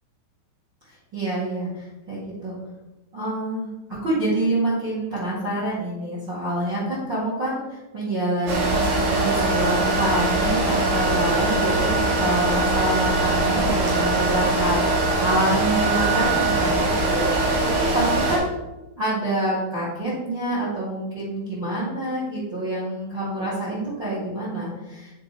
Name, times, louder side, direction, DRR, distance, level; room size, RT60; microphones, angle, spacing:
voice 1, 1.1-2.5 3.1-3.7 4.0-18.5 19.0-25.1, right 1 dB, 40° right, -7 dB, 1.6 m, -27 dB
sound 1, 8.5-18.4, right 2 dB, 70° right, 4.0 m, -22 dB
9.7 x 4.5 x 4.1 m, 1.0 s
omnidirectional pair, 5.7 m